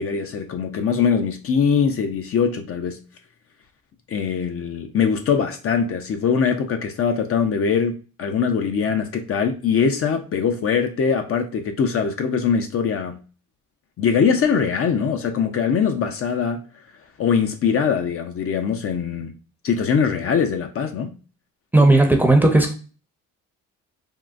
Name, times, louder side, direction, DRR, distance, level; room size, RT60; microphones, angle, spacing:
voice 1, 0.0-3.0 4.1-13.2 14.0-16.6 17.2-19.3 19.6-21.1, left 6 dB, 50° left, 0.5 m, -22 dB
voice 2, 21.7-22.7, right 2 dB, 5° right, 0.6 m, -15 dB
3.6 x 2.3 x 2.5 m
cardioid pair, 90°, 30 cm